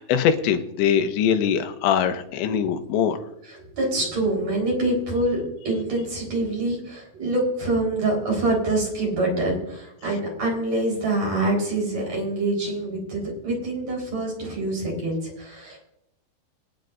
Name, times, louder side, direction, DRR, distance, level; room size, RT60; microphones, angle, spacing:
voice 1, 0.0-3.2, left 8 dB, 90° left, 8 dB, 3.2 m, -22 dB
voice 2, 3.5-15.8, right 2 dB, 40° right, -1 dB, 5.3 m, -25 dB
23.5 x 10.5 x 2.6 m, 0.80 s
omnidirectional pair, 5.0 m